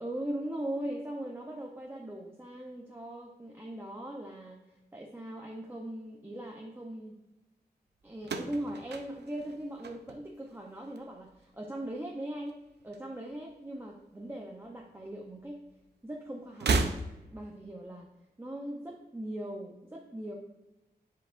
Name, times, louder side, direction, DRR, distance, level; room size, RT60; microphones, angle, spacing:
voice 1, 0.0-4.6 4.9-7.2 8.0-15.6 16.0-16.7 17.3-18.1 18.4-20.3, right 1 dB, 15° right, -1 dB, 0.7 m, -40 dB
sound 1, 8.2-10.5 10.8-11.4 12.5-13.5 13.8-13.9 15.0-15.1 16.5-17.5, right 3 dB, 80° right, 0.6 m, -33 dB
10.5 x 4.7 x 2.5 m, 0.99 s
wide cardioid pair, 120°, 17 cm